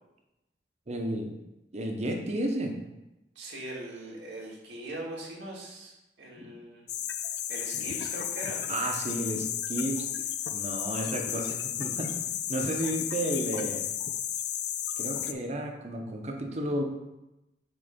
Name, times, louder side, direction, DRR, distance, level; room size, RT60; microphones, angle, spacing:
voice 1, 0.9-1.3 1.7-2.8 6.4-6.5 8.7-10.1 10.5-12.1 12.5-13.9 15.0-16.8, right 1 dB, 40° right, 3 dB, 0.9 m, -32 dB
voice 2, 3.4-6.9 7.5-8.6, right 1 dB, 90° right, -3 dB, 1.9 m, -41 dB
sound 1, 6.9-15.3, left 10 dB, 70° left, 0.4 m, -33 dB
7.7 x 3.3 x 5.2 m, 0.96 s
head